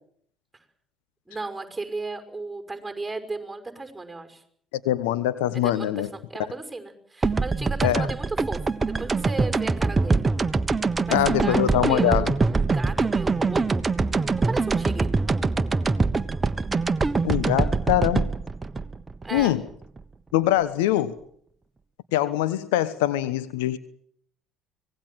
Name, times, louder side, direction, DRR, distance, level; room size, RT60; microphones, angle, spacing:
voice 1, 1.3-4.4 5.5-8.6 9.0-10.2 11.0-13.9 14.4-15.1 19.2-19.6, right 3 dB, 10° right, 7 dB, 5.8 m, -35 dB
voice 2, 4.8-6.1 7.8-8.1 11.1-12.3 17.2-18.3 19.3-19.6 20.3-21.2 22.1-23.8, left 13 dB, 80° left, 15 dB, 1.2 m, -23 dB
sound 1, 7.2-20.0, right 3 dB, 25° right, 1.3 m, -24 dB
25.0 x 18.5 x 7.7 m, 0.63 s
hypercardioid pair, 60°, 0 cm